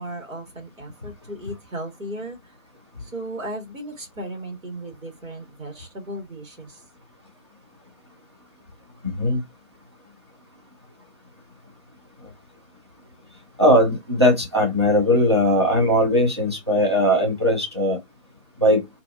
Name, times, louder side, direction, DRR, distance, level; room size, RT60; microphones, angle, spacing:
voice 1, 0.0-2.6 3.0-6.8, right 1 dB, 70° right, 1.5 m, -35 dB
voice 2, 9.0-9.4 13.6-18.0 18.6-18.8, equal, 20° right, 0.6 m, -19 dB
2.6 x 2.5 x 2.2 m
figure-of-eight pair, 150°, 41 cm